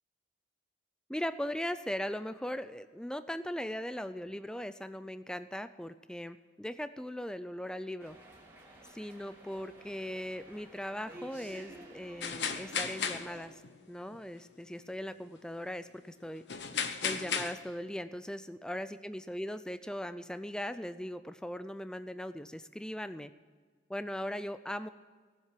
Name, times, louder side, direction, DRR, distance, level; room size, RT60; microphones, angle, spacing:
voice 1, 1.1-8.2 8.9-13.6 13.9-16.4 17.0-23.3 23.9-24.9, equal, 5° left, 12 dB, 0.4 m, -39 dB
sound 1, 8.0-13.5, right 1 dB, 15° right, 2.6 m, -52 dB
sound 2, 12.2-13.7 14.1-14.2 16.5-17.5, left 6 dB, 80° left, 1.1 m, -34 dB
17.5 x 7.5 x 7.5 m, 1.5 s
head